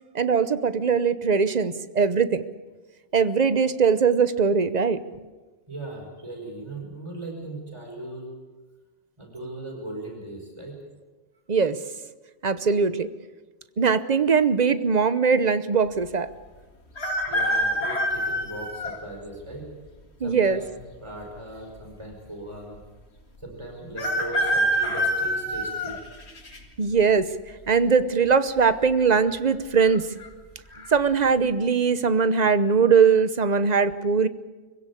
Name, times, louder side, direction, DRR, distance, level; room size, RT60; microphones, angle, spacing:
voice 1, 0.1-2.4 3.1-5.0 11.5-11.8 12.4-13.1 13.8-16.3 20.2-20.6 26.8-27.3 27.7-30.0 30.9-34.3, right 5 dB, 45° right, 13 dB, 1.0 m, -21 dB
voice 2, 5.7-8.3 9.2-10.8 17.3-19.7 20.2-22.8 23.4-26.0, right 2 dB, 25° right, 1 dB, 5.3 m, -38 dB
sound 1, 17.0-19.0 19.7-19.8 20.9-21.5 21.8-21.9 22.1-22.2 24.0-26.6 27.1-27.5 28.6-29.0 29.3-29.4 29.9-30.3 30.7-30.9, equal, 85° left, 2.4 m, -26 dB
25.0 x 16.5 x 8.5 m, 1.3 s
omnidirectional pair, 1.1 m